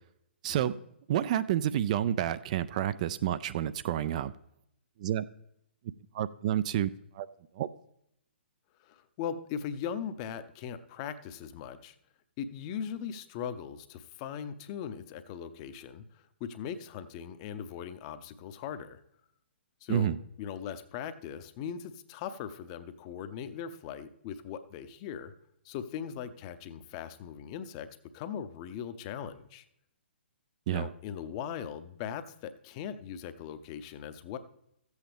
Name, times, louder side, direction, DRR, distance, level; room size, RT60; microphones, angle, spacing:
voice 1, 0.4-0.7 1.1-4.3 5.0-5.2 6.1-7.3 7.6-7.7 19.9-20.2 30.7-30.9, right 11 dB, 40° right, 0.3 m, -29 dB
voice 2, 8.8-11.9 12.4-19.0 19.8-25.3 25.6-27.9 28.1-29.6 30.7-34.4, left 8 dB, 30° left, 0.7 m, -39 dB
14.0 x 8.0 x 3.4 m
figure-of-eight pair, 125°, 6 cm